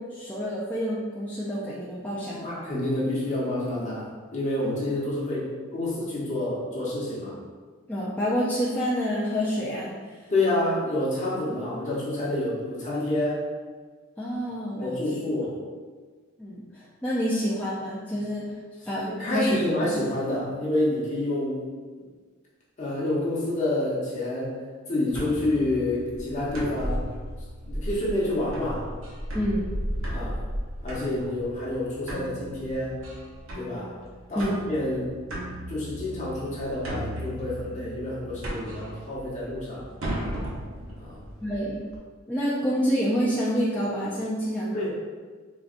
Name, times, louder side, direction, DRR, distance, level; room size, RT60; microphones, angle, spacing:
voice 1, 0.0-2.5 7.9-10.3 14.2-15.0 16.4-18.5 18.9-19.6 29.3-29.7 34.4-34.6 41.4-41.8 42.3-44.9, equal, 10° left, -8 dB, 0.4 m, -28 dB
voice 2, 2.4-7.4 10.3-13.4 14.8-15.6 19.1-21.6 22.8-24.5 24.9-27.1 27.7-28.9 30.1-30.4 30.8-33.0 33.5-33.9 34.3-35.1 35.7-39.9 41.0-41.2 44.7-44.9, left 1 dB, 40° left, -7 dB, 0.9 m, -28 dB
sound 1, 25.1-42.0, equal, 90° right, 0.7 m, -35 dB
4.0 x 2.2 x 2.5 m, 1.4 s
head